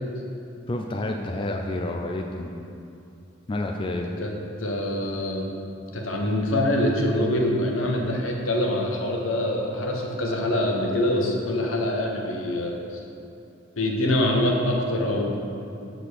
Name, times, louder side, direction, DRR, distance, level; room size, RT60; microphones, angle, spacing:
voice 1, 0.7-2.5 3.5-4.1, left 2 dB, 25° left, 2 dB, 0.3 m, -29 dB
voice 2, 4.6-5.5 5.9-13.0 13.8-15.4, left 1 dB, 85° left, 0 dB, 1.0 m, -24 dB
6.8 x 3.9 x 6.4 m, 2.7 s
head